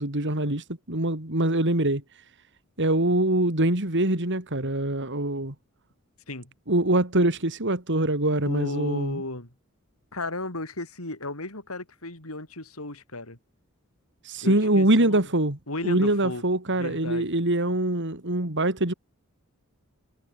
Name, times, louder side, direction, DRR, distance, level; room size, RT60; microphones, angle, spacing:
voice 1, 0.0-2.0 2.8-5.5 6.7-9.2 14.2-15.6 15.8-18.9, right 1 dB, 55° right, 3.8 m, -24 dB
voice 2, 8.4-9.5 10.1-13.4 14.4-15.3 15.7-16.4 16.8-17.3, left 2 dB, 80° left, 6.6 m, -35 dB
head